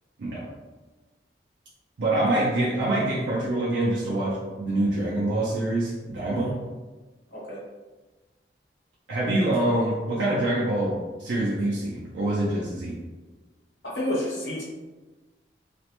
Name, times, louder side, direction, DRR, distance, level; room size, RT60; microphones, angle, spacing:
voice 1, 2.0-6.5 9.1-13.0, right 1 dB, 90° right, -6 dB, 0.5 m, -25 dB
voice 2, 13.9-14.6, left 1 dB, 80° left, -5 dB, 1.0 m, -31 dB
2.5 x 2.1 x 2.9 m, 1.2 s
head